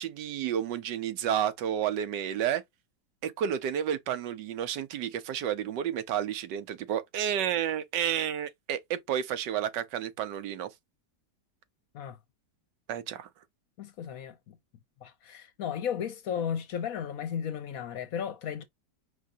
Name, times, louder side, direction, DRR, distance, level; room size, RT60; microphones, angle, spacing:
voice 1, 0.0-2.6 3.2-10.7 12.9-13.3, right 9 dB, 85° right, 1.4 m, -31 dB
voice 2, 13.8-14.6 15.0-18.6, left 8 dB, 65° left, 1.0 m, -34 dB
5.1 x 3.9 x 2.7 m
omnidirectional pair, 1.8 m